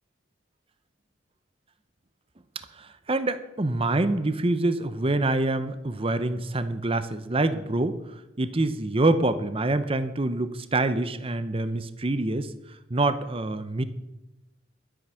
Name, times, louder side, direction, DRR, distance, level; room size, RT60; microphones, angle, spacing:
voice 1, 2.5-13.8, right 2 dB, 30° right, 12 dB, 0.7 m, -26 dB
12.5 x 8.8 x 6.3 m, 0.93 s
head